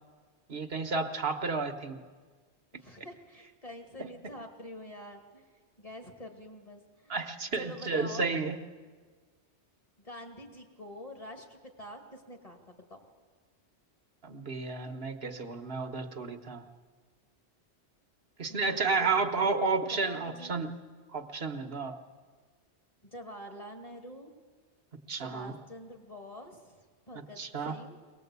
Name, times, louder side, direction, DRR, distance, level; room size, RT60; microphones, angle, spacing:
voice 1, 0.5-2.0 4.0-4.1 7.1-8.6 14.2-16.6 18.4-20.7 21.1-21.9 25.1-25.5 27.4-27.7, right 4 dB, 60° right, 6 dB, 1.4 m, -31 dB
voice 2, 2.7-5.5 5.8-7.3 7.5-8.4 10.0-13.1 18.5-19.3 20.0-20.6 23.0-24.3 25.1-28.0, left 1 dB, 30° left, 2 dB, 2.6 m, -47 dB
23.0 x 19.5 x 8.2 m, 1.5 s
omnidirectional pair, 1.2 m